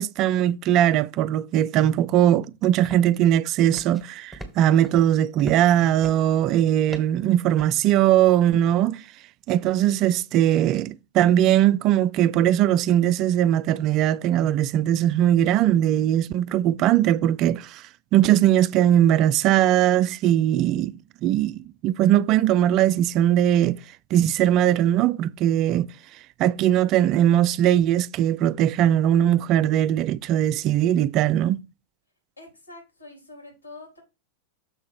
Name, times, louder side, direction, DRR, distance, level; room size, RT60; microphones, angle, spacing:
voice 1, 0.0-9.0 9.5-17.8 18.1-20.9 21.2-23.8 24.1-25.9 26.4-31.6, right 11 dB, 35° right, 0.4 m, -20 dB
sound 1, 2.8-3.3 3.7-4.0 4.3-5.7 6.0-6.4 6.9-7.8, right 2 dB, ahead, 1.8 m, -40 dB
voice 2, 32.4-34.0, left 2 dB, 80° left, 3.8 m, -45 dB
6.9 x 3.7 x 6.0 m
figure-of-eight pair, 90°, 0 cm